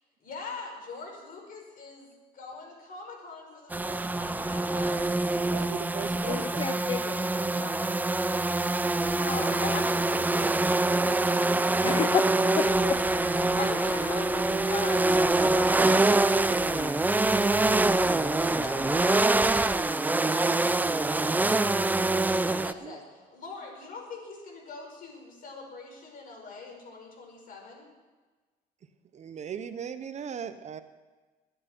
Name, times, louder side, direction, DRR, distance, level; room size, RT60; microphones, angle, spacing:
voice 1, 0.2-5.4 7.6-7.7 9.4-9.7 13.6-14.2 18.9-27.9, left 4 dB, 55° left, 1 dB, 5.3 m, -45 dB
sound 1, 3.7-22.7, right 2 dB, 10° right, 0.5 m, -25 dB
voice 2, 5.5-6.8 22.8-23.0 29.1-30.8, right 7 dB, 45° right, 11 dB, 0.9 m, -38 dB
voice 3, 6.3-7.6 9.0-16.0 16.7-17.5 17.8-18.0, left 6 dB, 30° left, 9 dB, 0.6 m, -35 dB
sound 2, 12.7-19.3, left 7 dB, 75° left, 1.3 m, -43 dB
21.5 x 10.0 x 4.6 m, 1.3 s
cardioid pair, 110°, 17 cm